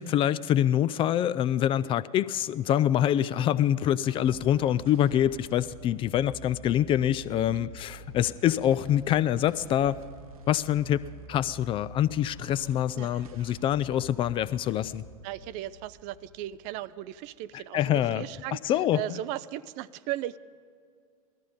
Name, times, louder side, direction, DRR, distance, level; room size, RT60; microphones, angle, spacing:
voice 1, 0.0-10.0 10.5-11.0 11.3-15.0 17.7-18.3 18.5-19.0, left 11 dB, 30° left, 15 dB, 0.4 m, -25 dB
sound 1, 3.2-17.8, right 2 dB, 75° right, 1.1 m, -48 dB
voice 2, 7.4-7.7 13.0-13.5 15.2-20.4, right 14 dB, 40° right, 18 dB, 0.4 m, -37 dB
18.0 x 13.5 x 5.2 m, 2.3 s
figure-of-eight pair, 85°, 19 cm